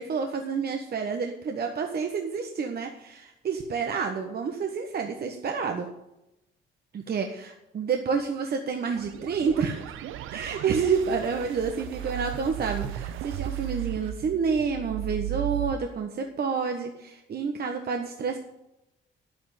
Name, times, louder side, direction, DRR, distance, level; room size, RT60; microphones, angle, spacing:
voice 1, 0.0-5.9 6.9-9.8 10.3-18.4, right 5 dB, 50° right, 4 dB, 1.4 m, -29 dB
sound 1, 8.8-15.7, right 13 dB, 85° right, 0.7 m, -35 dB
9.5 x 8.7 x 9.4 m, 0.89 s
cardioid pair, 90°, 20 cm